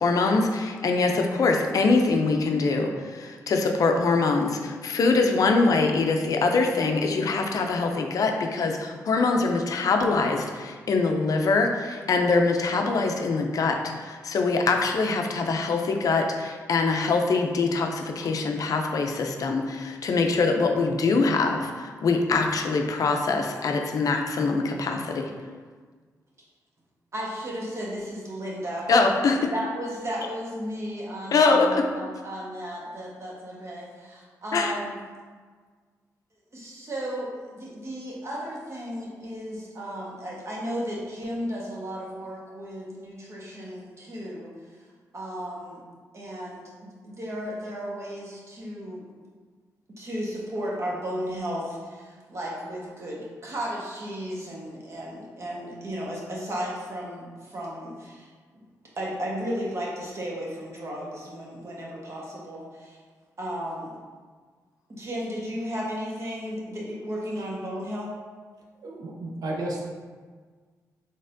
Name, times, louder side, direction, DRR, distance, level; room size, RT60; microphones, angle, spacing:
voice 1, 0.0-25.3 28.9-29.5 31.3-31.9 34.5-34.7, left 3 dB, 60° left, 3 dB, 0.4 m, -23 dB
voice 2, 27.1-29.2 29.5-35.0 36.5-44.5 45.1-45.8 46.1-49.0 50.0-58.3 58.5-58.6 59.0-63.0 63.4-63.9 64.9-68.1, equal, 45° right, -4 dB, 1.2 m, -34 dB
voice 3, 68.8-69.8, right 1 dB, 70° right, -1 dB, 0.6 m, -32 dB
4.0 x 3.4 x 2.6 m, 1.5 s
cardioid pair, 60°, 7 cm